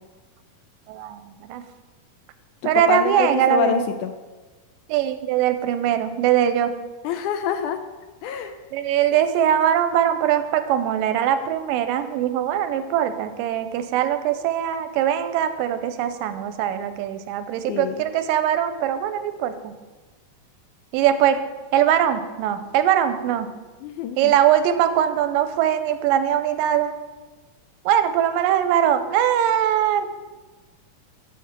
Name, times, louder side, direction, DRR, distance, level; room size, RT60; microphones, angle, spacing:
voice 1, 0.9-1.2 1.5-1.6 2.6-3.8 4.9-6.7 8.7-19.7 20.9-21.4 21.7-23.5 24.2-27.0 27.9-30.1, right 10 dB, 85° right, 10 dB, 2.3 m, -21 dB
voice 2, 2.6-4.1 7.0-7.8 8.2-8.5 17.7-18.0 23.8-24.3, left 9 dB, 80° left, 8 dB, 1.8 m, -26 dB
7.2 x 7.2 x 5.9 m, 1.2 s
omnidirectional pair, 3.9 m